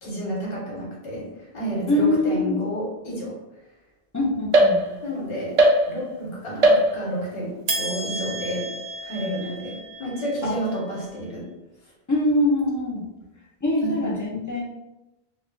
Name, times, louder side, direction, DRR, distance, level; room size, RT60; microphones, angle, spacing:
voice 1, 0.0-3.4 5.0-8.7 9.0-11.5 13.8-14.1, equal, 70° left, -4 dB, 1.3 m, -31 dB
voice 2, 1.9-2.6 4.1-4.8 10.4-10.6 12.1-13.1 13.6-14.6, left 1 dB, 25° left, -5 dB, 0.4 m, -23 dB
sound 1, 4.5-5.2 5.6-6.2 6.6-7.3 7.7-11.1, right 1 dB, 55° right, 0.5 m, -23 dB
2.4 x 2.4 x 3.7 m, 1.0 s
omnidirectional pair, 1.0 m